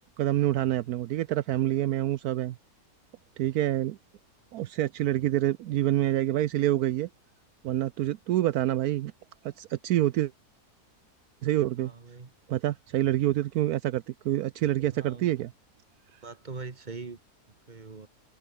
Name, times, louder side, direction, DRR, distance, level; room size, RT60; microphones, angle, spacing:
voice 1, 0.2-2.6 3.4-4.0 4.5-7.1 7.6-9.1 9.6-10.3 11.4-11.9 12.5-15.5, right 14 dB, 75° right, 1.1 m, -27 dB
voice 2, 11.8-12.3 14.9-15.3 16.2-17.2 17.7-18.1, right 4 dB, 30° right, 1.5 m, -41 dB
omnidirectional pair, 1.6 m